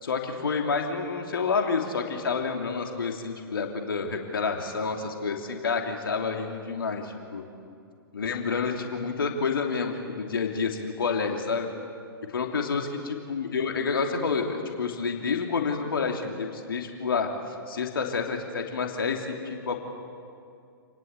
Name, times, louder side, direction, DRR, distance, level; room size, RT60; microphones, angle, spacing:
voice 1, 0.0-7.4 8.1-11.7 12.3-12.9 13.3-19.8, left 5 dB, 65° left, 2 dB, 3.0 m, -29 dB
28.5 x 20.5 x 8.2 m, 2.4 s
figure-of-eight pair, 115°, 12 cm